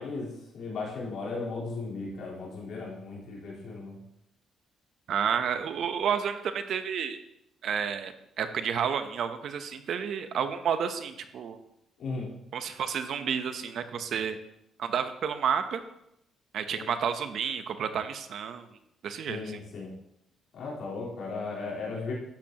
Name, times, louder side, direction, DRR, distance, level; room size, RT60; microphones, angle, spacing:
voice 1, 0.0-4.0 12.0-12.3 16.8-16.9 19.3-19.9 20.5-22.1, left 3 dB, 70° left, -5 dB, 4.1 m, -36 dB
voice 2, 5.1-7.2 7.6-11.6 12.5-14.4 14.8-15.8 16.5-18.6 19.0-19.6, right 7 dB, 70° right, 9 dB, 0.9 m, -30 dB
12.0 x 8.6 x 3.0 m, 0.80 s
cardioid pair, 90°, 0 cm